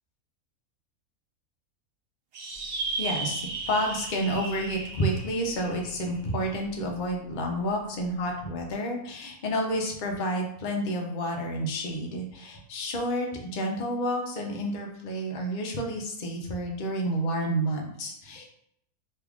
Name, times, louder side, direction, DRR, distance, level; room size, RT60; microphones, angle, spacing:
sound 1, 2.3-7.1, right 3 dB, 60° right, 0.6 m, -36 dB
voice 1, 3.0-3.4 3.7-18.4, equal, 55° left, 1 dB, 0.5 m, -30 dB
3.1 x 2.4 x 3.4 m, 0.71 s
omnidirectional pair, 1.5 m